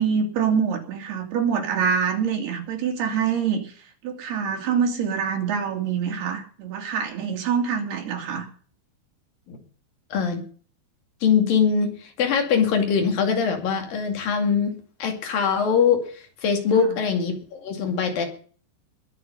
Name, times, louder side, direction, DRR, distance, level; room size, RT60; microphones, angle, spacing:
voice 1, 0.0-3.7 4.0-8.5, right 7 dB, 70° right, 3 dB, 4.4 m, -25 dB
voice 2, 10.1-10.4 11.2-16.0 16.4-18.3, left 6 dB, 60° left, 4 dB, 4.0 m, -22 dB
21.5 x 7.2 x 5.4 m, 0.43 s
omnidirectional pair, 4.7 m